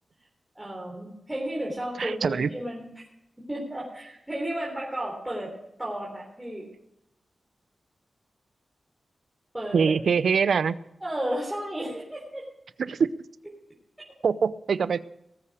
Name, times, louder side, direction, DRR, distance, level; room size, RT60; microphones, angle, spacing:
voice 1, 0.6-2.8 3.5-5.5 5.8-6.7 9.5-9.9 11.0-12.5, right 1 dB, 10° right, -4 dB, 3.7 m, -33 dB
voice 2, 2.0-2.5 9.7-10.7 12.8-13.1 14.2-15.0, right 6 dB, 75° right, 16 dB, 0.6 m, -23 dB
19.0 x 8.6 x 4.8 m, 0.84 s
wide cardioid pair, 115°, 0 cm